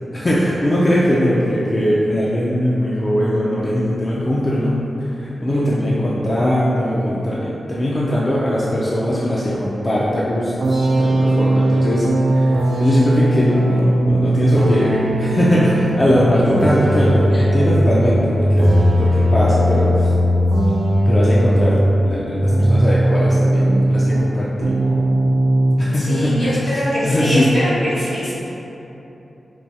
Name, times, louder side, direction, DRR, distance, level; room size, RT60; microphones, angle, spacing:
voice 1, 0.1-4.8 5.1-20.1 21.1-21.7 22.0-25.0 25.8-27.5, equal, 30° left, -7 dB, 0.4 m, -20 dB
sound 1, 10.6-24.3 24.6-25.8, right 1 dB, 75° right, 0.4 m, -17 dB
voice 2, 26.0-28.3, equal, 65° left, -9 dB, 1.2 m, -22 dB
4.5 x 2.3 x 2.7 m, 3.0 s
wide cardioid pair, 105°, 0 cm